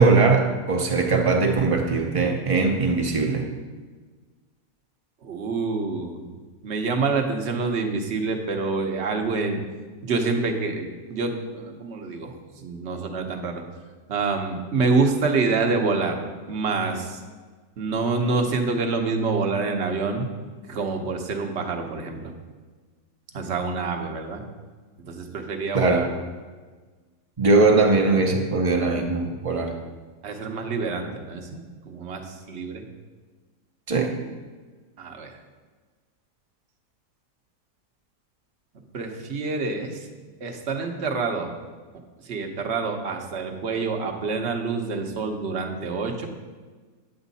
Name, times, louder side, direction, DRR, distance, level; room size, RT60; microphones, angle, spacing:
voice 1, 0.0-3.5 25.7-26.1 27.4-29.7 33.9-34.1, right 3 dB, 30° right, 2 dB, 0.6 m, -20 dB
voice 2, 5.2-6.3 6.6-9.6 10.0-12.4 12.6-13.6 14.1-16.2 16.5-17.2 17.8-20.3 20.7-22.3 23.3-24.4 25.0-26.1 30.2-32.8 35.0-35.4 38.9-40.0 40.4-41.5 42.3-46.3, right 4 dB, 50° right, 4 dB, 1.0 m, -27 dB
9.3 x 8.1 x 4.1 m, 1.4 s
omnidirectional pair, 1.8 m